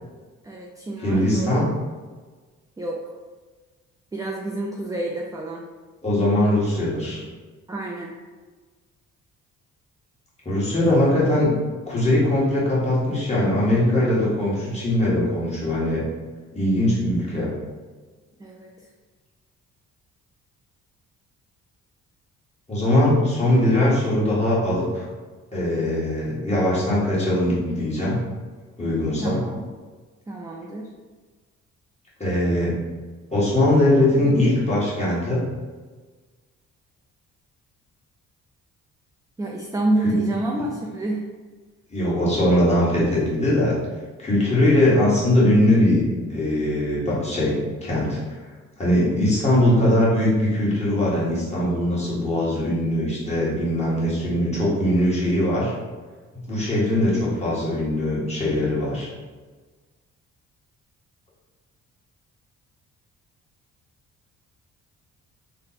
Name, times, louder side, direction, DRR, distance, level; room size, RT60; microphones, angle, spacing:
voice 1, 0.4-1.7 2.8-3.2 4.1-5.6 7.7-8.1 10.8-11.1 18.4-18.9 29.2-29.6 30.3-30.9 39.4-41.2, right 2 dB, 10° right, -1 dB, 0.3 m, -28 dB
voice 2, 1.0-1.7 6.0-7.2 10.4-11.5 11.9-16.0 16.5-17.5 22.7-25.0 25.5-28.2 28.8-29.4 32.2-32.7 33.3-35.4 40.0-40.1 41.9-43.8 44.2-46.0 46.3-48.2 48.8-55.7 56.5-59.1, left 1 dB, 20° left, -7 dB, 1.5 m, -21 dB
3.2 x 2.0 x 4.0 m, 1.4 s
cardioid pair, 90°, 30 cm